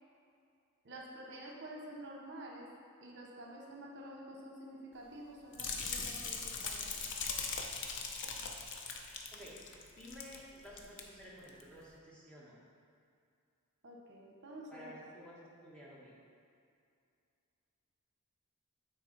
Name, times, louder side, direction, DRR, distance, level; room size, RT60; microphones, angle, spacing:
voice 1, 0.8-2.7 3.0-7.1 13.8-14.9, right 1 dB, 55° right, -1 dB, 0.9 m, -49 dB
sound 1, 5.5-10.4 10.7-11.0 11.5-11.6, left 5 dB, 60° left, 0.6 m, -40 dB
voice 2, 9.3-12.6 14.7-16.1, equal, 5° left, -7 dB, 1.3 m, -53 dB
9.1 x 4.1 x 4.0 m, 2.4 s
head